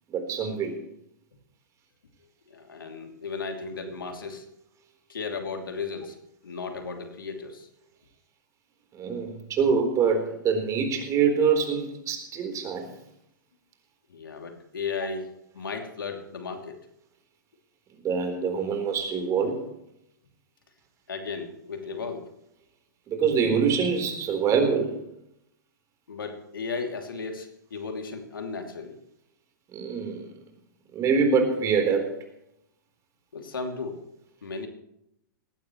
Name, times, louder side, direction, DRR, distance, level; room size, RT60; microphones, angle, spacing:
voice 1, 0.1-0.8 8.9-12.9 18.0-19.6 23.1-25.0 29.7-30.3 30.9-32.2, right 6 dB, 30° right, 4 dB, 4.0 m, -25 dB
voice 2, 2.5-4.4 5.1-6.2 6.4-7.7 14.1-16.8 21.1-22.3 26.1-29.0 33.3-34.1 34.4-34.7, left 4 dB, 90° left, 4 dB, 2.8 m, -35 dB
18.5 x 16.0 x 3.2 m, 0.79 s
hypercardioid pair, 120°, 11 cm